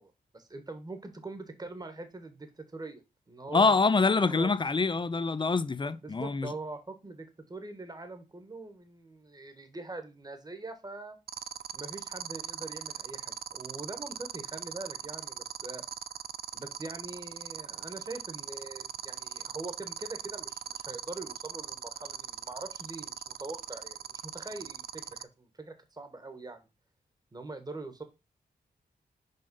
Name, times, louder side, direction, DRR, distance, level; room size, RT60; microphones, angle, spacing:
voice 1, 0.0-3.0 3.3-3.8 4.3-4.5 6.0-11.2 11.7-15.8 16.5-26.6 27.3-28.0, right 2 dB, 25° right, 1.4 m, -43 dB
voice 2, 3.5-6.5, left 4 dB, 30° left, 0.6 m, -25 dB
sound 1, 11.3-25.2, right 9 dB, 65° right, 0.4 m, -39 dB
5.5 x 5.2 x 5.4 m
wide cardioid pair, 90°, 17 cm